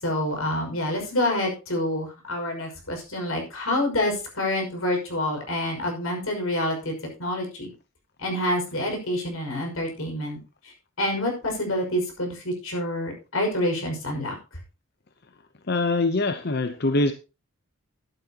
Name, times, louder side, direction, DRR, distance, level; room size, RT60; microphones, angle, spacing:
voice 1, 0.0-6.9 7.2-7.7 8.2-10.4 10.6-10.7 11.0-14.4, left 1 dB, 75° left, 2 dB, 5.8 m, -27 dB
voice 2, 15.7-17.1, left 2 dB, 50° left, 9 dB, 0.8 m, -23 dB
13.0 x 12.0 x 2.9 m, 0.30 s
head